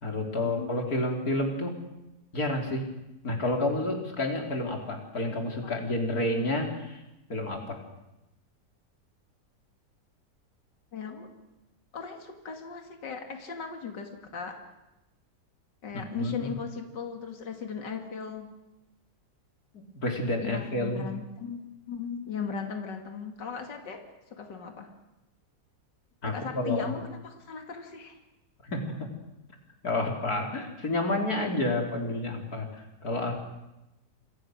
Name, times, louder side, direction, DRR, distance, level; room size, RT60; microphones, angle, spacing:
voice 1, 0.0-1.7 2.3-2.9 3.2-7.0 7.3-7.8 15.9-16.5 20.0-21.1 26.2-26.9 28.6-29.1 29.8-32.7 33.0-33.3, left 1 dB, 55° left, 2 dB, 4.2 m, -29 dB
voice 2, 10.9-11.3 11.9-14.6 15.8-18.5 20.4-24.0 24.3-24.9 26.2-28.2, left 6 dB, 75° left, 4 dB, 3.0 m, -37 dB
27.5 x 26.0 x 6.5 m, 0.95 s
omnidirectional pair, 1.9 m